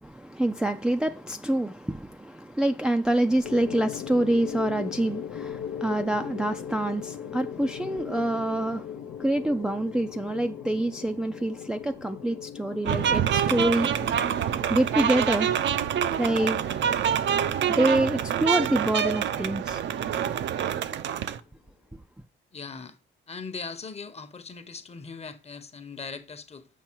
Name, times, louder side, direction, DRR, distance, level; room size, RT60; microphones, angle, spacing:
voice 1, 0.0-13.9 14.7-15.5 16.2-16.6 17.7-19.8, right 1 dB, 5° right, 0.4 m, -26 dB
sound 1, 3.4-20.7, left 9 dB, 80° left, 0.5 m, -40 dB
sound 2, 12.8-21.4, right 9 dB, 65° right, 0.6 m, -26 dB
voice 2, 22.5-23.0 23.3-26.7, left 5 dB, 30° left, 0.9 m, -39 dB
7.3 x 5.4 x 4.5 m
cardioid pair, 90°, 20 cm